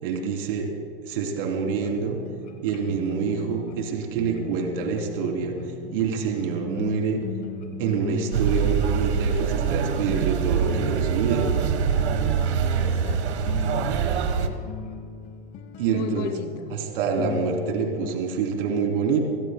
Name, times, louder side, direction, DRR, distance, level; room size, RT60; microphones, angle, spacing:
voice 1, 0.0-0.7 1.0-2.2 2.6-5.6 5.9-7.2 7.8-11.4 15.8-16.3 16.7-19.2, right 6 dB, 55° right, 1 dB, 3.2 m, -26 dB
sound 1, 1.7-18.2, left 7 dB, 25° left, 1.0 m, -38 dB
sound 2, 7.7-12.7, left 2 dB, 5° left, 2.7 m, -45 dB
sound 3, 8.3-14.5, right 7 dB, 80° right, 1.4 m, -24 dB
voice 2, 12.7-14.1 15.9-16.8, left 9 dB, 40° left, 11 dB, 1.2 m, -38 dB
29.5 x 16.0 x 2.2 m, 2.1 s
hypercardioid pair, 150°, 33 cm